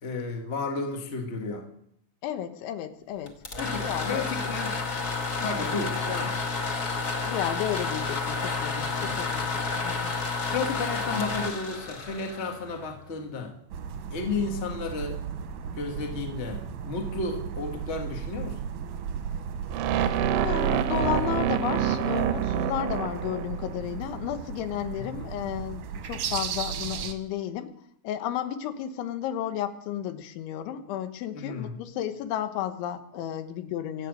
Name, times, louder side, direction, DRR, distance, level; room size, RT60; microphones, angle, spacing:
voice 1, 0.0-1.7 3.6-4.8 5.4-6.4 9.0-9.2 10.5-13.5 14.1-15.2 15.7-18.6 24.9-25.1 31.3-31.8, left 4 dB, 60° left, 3 dB, 0.7 m, -32 dB
voice 2, 2.2-3.3 3.8-4.5 5.5-5.7 7.2-10.1 20.4-27.7 28.0-34.1, left 11 dB, 85° left, 9 dB, 3.5 m, -33 dB
sound 1, 3.3-13.1, left 4 dB, 45° left, 1.2 m, -30 dB
sound 2, 13.7-27.1, right 7 dB, 70° right, 2.1 m, -35 dB
sound 3, 19.7-23.8, right 9 dB, 90° right, 3.4 m, -27 dB
25.0 x 8.8 x 6.5 m, 0.70 s
omnidirectional pair, 5.3 m